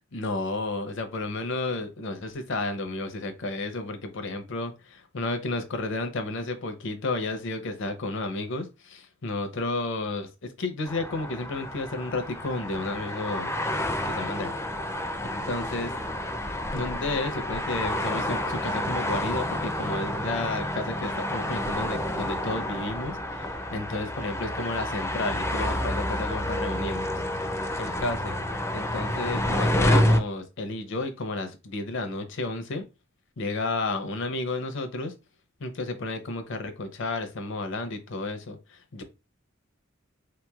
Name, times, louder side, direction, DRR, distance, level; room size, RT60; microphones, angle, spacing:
voice 1, 0.1-13.5 14.0-14.5 15.3-15.9 16.7-27.2 27.8-28.4 28.7-32.8 33.4-35.1 35.6-38.6 38.9-39.0, left 2 dB, 65° left, 0.6 m, -32 dB
sound 1, 10.9-30.2, left 1 dB, 15° left, 0.4 m, -29 dB
3.3 x 3.0 x 2.3 m
head